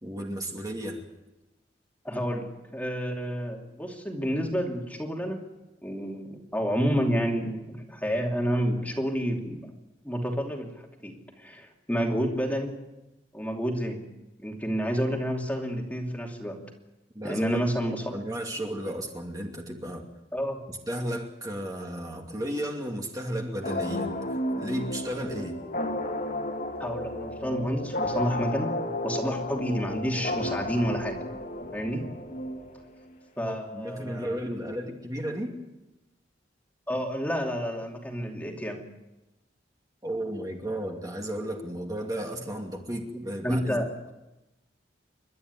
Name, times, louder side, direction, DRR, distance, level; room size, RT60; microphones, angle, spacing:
voice 1, 0.0-1.0 17.1-17.6 18.1-20.0 20.7-24.1 24.6-25.6 33.4-35.5 40.0-44.1, right 1 dB, 20° right, 1 dB, 2.7 m, -34 dB
voice 2, 2.0-5.4 5.8-9.7 10.0-12.8 13.3-14.1 14.4-16.7 17.2-18.2 20.3-20.6 26.8-28.8 29.0-31.2 31.7-32.1 33.4-34.4 36.9-38.9 43.1-43.9, equal, 10° left, 1 dB, 2.7 m, -30 dB
sound 1, 23.6-33.1, left 1 dB, 50° left, 2.5 m, -33 dB
29.5 x 12.5 x 9.6 m, 0.99 s
head